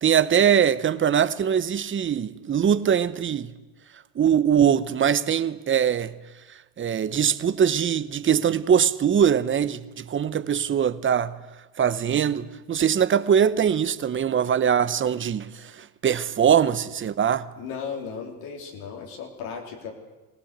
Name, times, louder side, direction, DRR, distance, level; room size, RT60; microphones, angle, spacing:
voice 1, 0.0-3.5 4.2-6.1 6.8-11.4 11.8-17.5, right 8 dB, 25° right, 0.8 m, -22 dB
voice 2, 17.6-19.9, left 6 dB, 80° left, 3.3 m, -35 dB
23.0 x 18.5 x 8.1 m
cardioid pair, 140°, 44 cm